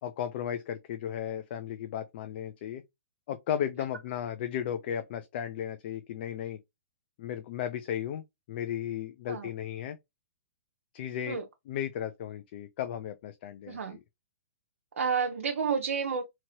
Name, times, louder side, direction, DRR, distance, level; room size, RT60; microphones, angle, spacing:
voice 1, 0.0-2.8 3.3-6.6 7.2-8.2 8.5-10.0 10.9-14.0, left 9 dB, 45° left, 0.4 m, -35 dB
voice 2, 13.7-14.0 15.0-16.2, right 6 dB, 85° right, 0.6 m, -30 dB
2.9 x 2.8 x 2.6 m
hypercardioid pair, 145°, 8 cm